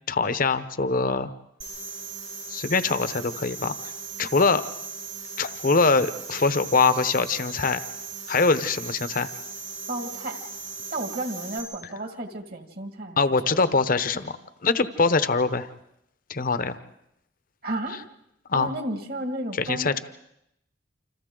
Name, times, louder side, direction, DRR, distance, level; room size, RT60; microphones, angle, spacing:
voice 1, 0.1-1.3 2.5-3.8 4.2-4.6 5.4-7.8 8.3-9.3 13.2-14.4 14.6-15.7 16.3-16.8 18.5-18.7 19.6-20.0, left 4 dB, 45° left, 12 dB, 0.9 m, -23 dB
sound 1, 1.6-11.6, right 5 dB, 90° right, 4.9 m, -38 dB
voice 2, 9.9-10.4 10.9-13.6 17.6-18.0 18.5-20.0, right 1 dB, 55° right, 5 dB, 2.1 m, -32 dB
29.0 x 26.5 x 3.9 m, 0.80 s
head